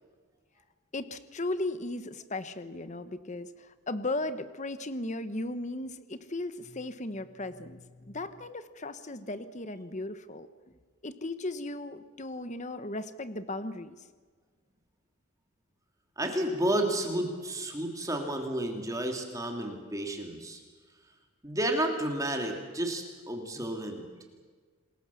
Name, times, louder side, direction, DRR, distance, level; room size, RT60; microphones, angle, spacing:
voice 1, 0.9-10.5 11.0-14.0, left 2 dB, 35° left, 12 dB, 1.1 m, -36 dB
voice 2, 16.2-20.6 21.4-24.0, right 1 dB, 15° right, 3 dB, 2.8 m, -31 dB
27.5 x 21.0 x 7.1 m, 1.5 s
head